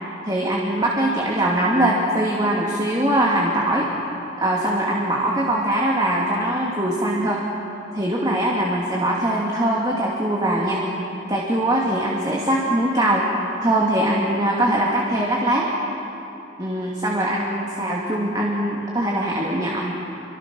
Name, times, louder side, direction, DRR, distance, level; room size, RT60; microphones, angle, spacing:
voice 1, 0.2-3.9 4.4-7.4 7.9-10.8 11.3-13.2 13.6-15.7 16.6-19.8, right 1 dB, 25° right, -3 dB, 2.5 m, -22 dB
28.0 x 25.5 x 6.3 m, 3.0 s
head